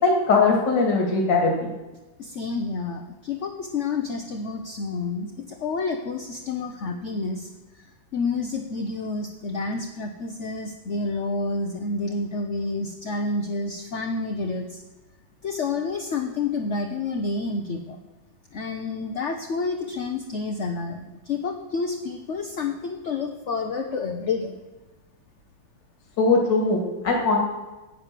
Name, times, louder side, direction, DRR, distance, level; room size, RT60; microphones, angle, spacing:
voice 1, 0.0-1.7 26.2-27.4, left 3 dB, 65° left, 1 dB, 2.6 m, -20 dB
voice 2, 2.2-7.5 7.7-7.9 8.1-14.8 15.4-18.0 18.5-24.6, left 3 dB, 50° left, 4 dB, 1.0 m, -29 dB
10.0 x 8.6 x 7.4 m, 1.1 s
omnidirectional pair, 2.1 m